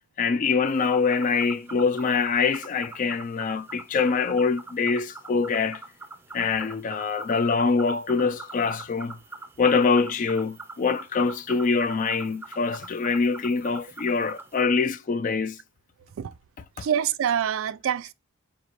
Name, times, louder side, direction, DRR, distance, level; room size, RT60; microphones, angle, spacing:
voice 1, 0.2-5.8 6.3-9.2 9.6-15.6 16.8-16.9, left 4 dB, 40° left, 0.3 m, -24 dB
sound 1, 0.6-14.6, right 3 dB, 10° right, 0.6 m, -44 dB
voice 2, 16.8-18.1, right 9 dB, 70° right, 0.3 m, -26 dB
4.9 x 3.2 x 2.6 m
head